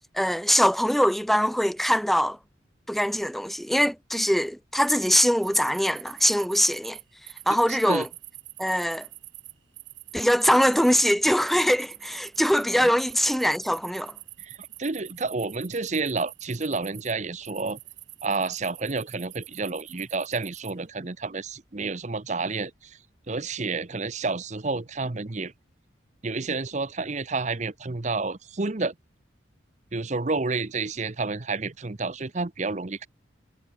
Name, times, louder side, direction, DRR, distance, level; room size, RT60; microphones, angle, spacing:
voice 1, 0.1-2.4 2.9-7.0 7.5-8.1 8.6-9.1 10.1-14.1, equal, ahead, 0.7 m, -22 dB
sound 1, 4.8-17.1 17.4-20.7, right 18 dB, 80° right, 5.7 m, -45 dB
voice 2, 7.7-8.1 12.8-12.9 14.4-17.8 18.2-23.0 23.3-25.5 26.2-28.9 29.9-33.1, right 3 dB, 40° right, 0.9 m, -30 dB
head